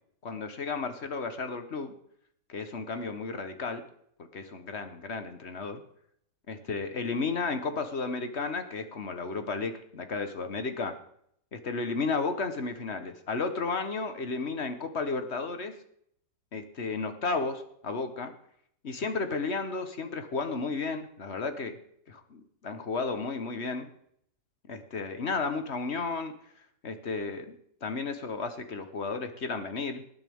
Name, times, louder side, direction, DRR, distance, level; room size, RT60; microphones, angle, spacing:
voice 1, 0.2-1.9 2.5-3.8 4.3-5.8 6.5-10.9 11.5-15.7 16.5-18.3 18.8-21.8 22.1-23.9 24.7-26.3 26.8-27.5 27.8-30.0, left 4 dB, 45° left, 8 dB, 1.3 m, -33 dB
19.5 x 9.7 x 3.6 m, 0.68 s
omnidirectional pair, 1.8 m